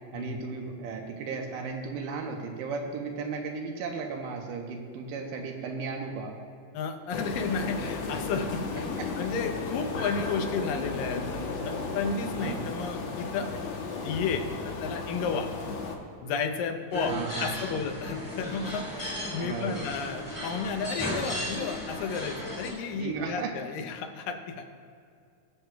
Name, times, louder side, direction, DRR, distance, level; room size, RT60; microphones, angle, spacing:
voice 1, 0.1-6.4 9.0-9.1 12.4-12.7 17.1-17.8 19.4-19.9 22.9-23.5, right 4 dB, 90° right, 2 dB, 2.5 m, -35 dB
voice 2, 6.7-8.9 9.2-13.6 14.0-15.5 16.2-24.8, left 5 dB, 90° left, 5 dB, 2.5 m, -32 dB
sound 1, 7.1-15.9, left 3 dB, 65° left, 1.9 m, -34 dB
sound 2, 16.9-22.7, left 1 dB, 5° left, 1.9 m, -35 dB
21.5 x 7.4 x 2.3 m, 2.4 s
omnidirectional pair, 3.8 m